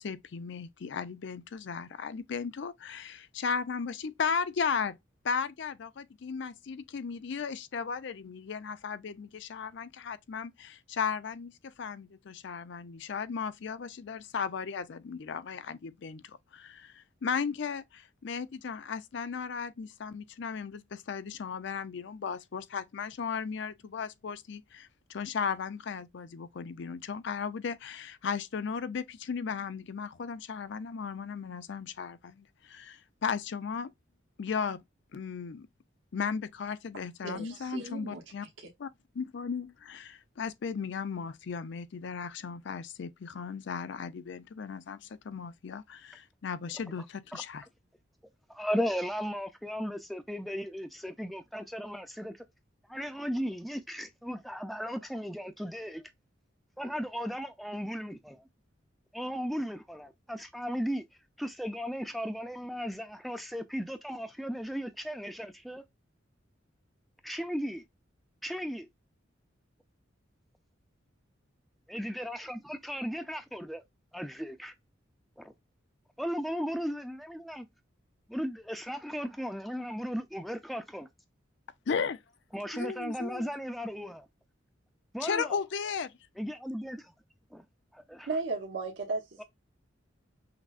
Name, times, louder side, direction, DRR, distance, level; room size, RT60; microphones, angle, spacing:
voice 1, 0.0-5.0 5.2-33.9 34.4-34.8 35.1-35.7 36.1-38.5 38.8-38.9 39.2-47.6 81.9-82.2 82.7-83.5 85.2-86.2, left 6 dB, 65° left, 0.4 m, -36 dB
voice 2, 37.2-38.7 88.3-89.4, right 3 dB, 70° right, 1.0 m, -36 dB
voice 3, 48.5-52.4 52.9-56.0 56.8-58.4 59.1-61.0 61.4-65.8 67.2-67.8 68.4-68.9 71.9-73.8 74.1-74.7 75.4-75.5 76.2-77.7 78.3-81.1 82.5-84.3 85.1-85.6 86.4-87.1 87.5-87.6 87.9-88.3, equal, ahead, 0.4 m, -36 dB
5.9 x 2.0 x 2.4 m
head